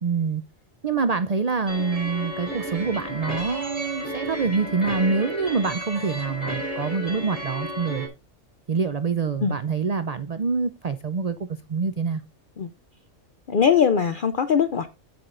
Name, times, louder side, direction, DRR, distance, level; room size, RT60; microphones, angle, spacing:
voice 1, 0.0-0.4 0.8-8.1 8.7-11.4 11.7-12.2, right 5 dB, 45° right, 0.5 m, -25 dB
sound 1, 1.7-8.1, equal, 30° right, 4.7 m, -33 dB
voice 2, 13.5-14.9, left 7 dB, 50° left, 0.7 m, -21 dB
15.5 x 5.9 x 2.5 m
omnidirectional pair, 1.3 m